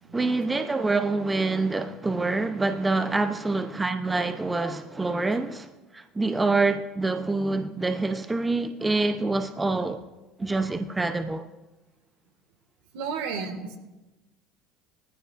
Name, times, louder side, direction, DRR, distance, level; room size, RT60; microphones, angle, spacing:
voice 1, 0.1-5.7 5.9-10.0 10.4-11.5, right 3 dB, 15° right, 0.7 m, -26 dB
voice 2, 12.9-13.8, right 5 dB, 75° right, 1.8 m, -32 dB
19.0 x 14.5 x 2.5 m
hypercardioid pair, 85°, 0 cm